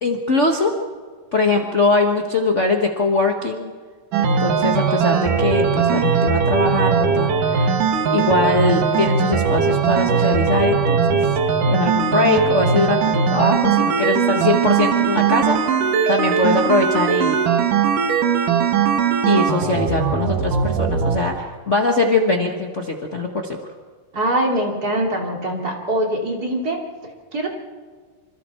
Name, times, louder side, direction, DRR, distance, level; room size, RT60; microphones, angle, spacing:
voice 1, 0.0-0.7 1.3-3.7 4.2-7.8 8.1-11.3 11.7-17.4 19.2-23.6, left 3 dB, 70° left, 2 dB, 0.6 m, -21 dB
sound 1, 4.1-21.2, right 6 dB, 75° right, 3.1 m, -19 dB
voice 2, 24.1-26.8 27.3-27.5, right 1 dB, 30° right, -1 dB, 3.3 m, -22 dB
26.5 x 26.5 x 4.4 m, 1.5 s
omnidirectional pair, 3.8 m